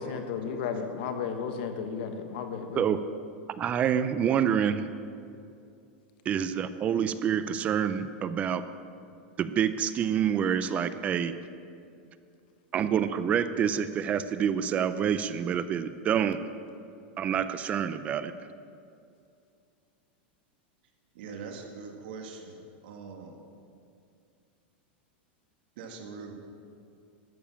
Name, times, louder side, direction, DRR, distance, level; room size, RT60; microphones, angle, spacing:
voice 1, 0.0-2.8, left 6 dB, 60° left, 6 dB, 1.3 m, -34 dB
voice 2, 2.8-3.2 3.6-4.9 6.3-8.6 9.4-11.4 12.7-16.4 17.2-18.3, right 8 dB, 25° right, 12 dB, 0.4 m, -27 dB
voice 3, 21.1-23.5 25.8-26.3, right 5 dB, 65° right, 3 dB, 1.9 m, -43 dB
12.5 x 7.0 x 7.1 m, 2.4 s
supercardioid pair, 150°, 6 cm